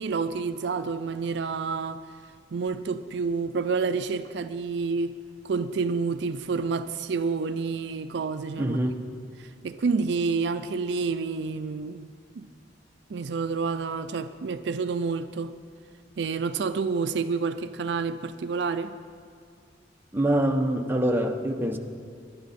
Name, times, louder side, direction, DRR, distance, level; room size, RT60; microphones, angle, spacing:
voice 1, 0.0-2.0 2.5-5.2 5.4-8.8 9.4-12.1 12.4-12.5 13.1-15.5 16.2-19.0, right 4 dB, 60° right, 11 dB, 0.4 m, -29 dB
voice 2, 8.6-9.0 20.1-21.8, right 1 dB, 10° right, 3 dB, 0.8 m, -25 dB
21.5 x 10.5 x 4.2 m, 2.2 s
head